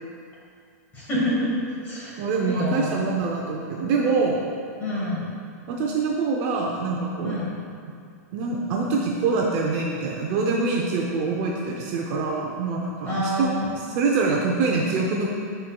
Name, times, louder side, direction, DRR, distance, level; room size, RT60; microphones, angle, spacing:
voice 1, 0.9-1.5 1.8-3.1 4.8-5.3 7.2-7.5 13.0-13.7, equal, 20° left, -6 dB, 1.5 m, -27 dB
voice 2, 2.2-4.4 5.7-7.5 8.3-15.3, right 4 dB, 30° right, -1 dB, 0.5 m, -25 dB
11.5 x 4.3 x 2.2 m, 2.3 s
supercardioid pair, 175°, 9 cm